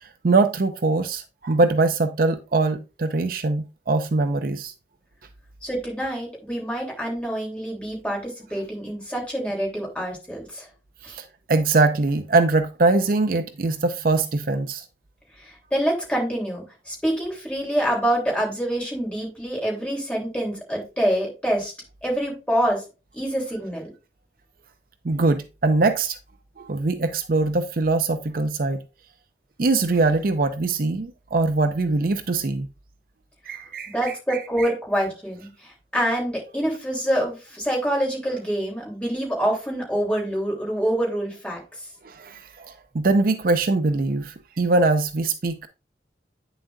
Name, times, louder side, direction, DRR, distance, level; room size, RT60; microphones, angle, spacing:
voice 1, 0.0-4.7 11.1-14.8 25.0-26.2 26.6-28.8 29.6-32.7 33.5-34.7 42.0-45.7, right 3 dB, 50° right, 0.5 m, -22 dB
voice 2, 5.6-10.7 11.0-11.1 15.4-21.7 22.0-22.8 23.1-23.9 33.9-41.6, right 1 dB, 5° left, 3.3 m, -26 dB
9.0 x 7.0 x 2.6 m
head